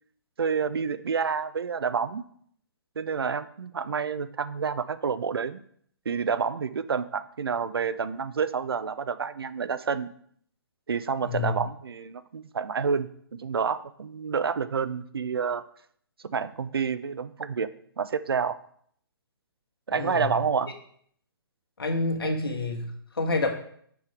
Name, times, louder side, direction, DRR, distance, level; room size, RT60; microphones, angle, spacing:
voice 1, 0.4-2.3 3.0-5.6 6.1-10.1 10.9-15.6 16.3-17.7 18.0-18.5 19.9-20.7 22.2-22.4, right 6 dB, 70° right, 14 dB, 0.5 m, -29 dB
voice 2, 11.2-11.6 19.9-20.4 21.8-23.5, left 3 dB, 65° left, 4 dB, 1.5 m, -28 dB
6.0 x 5.5 x 4.8 m, 0.63 s
figure-of-eight pair, 130°, 13 cm